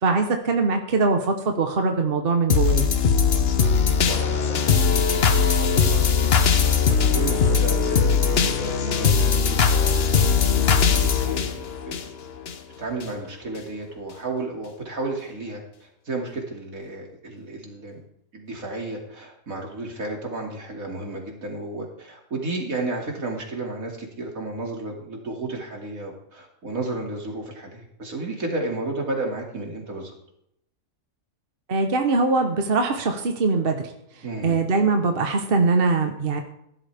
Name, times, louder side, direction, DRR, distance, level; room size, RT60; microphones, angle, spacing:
voice 1, 0.0-2.8 31.7-33.9 34.4-36.4, right 3 dB, 45° right, 4 dB, 1.4 m, -22 dB
sound 1, 2.5-12.5 13.0-13.1, left 6 dB, 50° left, 1.1 m, -20 dB
voice 2, 3.6-12.0 12.8-18.0 18.3-30.1 34.2-34.6, right 2 dB, 70° right, 0 dB, 3.2 m, -33 dB
16.0 x 12.5 x 3.6 m, 0.77 s
omnidirectional pair, 1.5 m